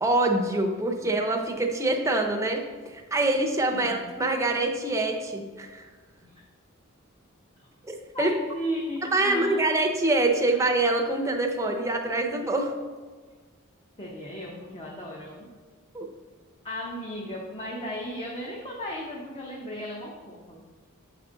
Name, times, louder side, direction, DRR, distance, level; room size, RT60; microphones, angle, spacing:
voice 1, 0.0-5.8 7.9-8.3 9.1-12.7 15.9-16.1, right 2 dB, 15° right, 2 dB, 0.6 m, -25 dB
voice 2, 8.1-9.7 14.0-15.5 16.6-20.6, equal, 25° left, -3 dB, 0.8 m, -35 dB
7.8 x 4.9 x 3.8 m, 1.4 s
head